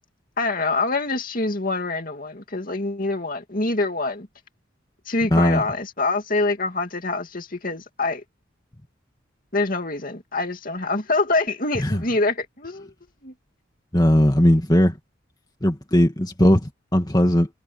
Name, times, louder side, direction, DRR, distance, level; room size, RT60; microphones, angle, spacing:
voice 1, 0.4-4.3 5.1-8.2 9.5-12.9 13.2-13.3, left 3 dB, 45° left, 2.6 m, -25 dB
voice 2, 5.3-5.6 11.8-12.0 13.9-15.0 15.6-17.5, equal, 20° left, 2.4 m, -18 dB
head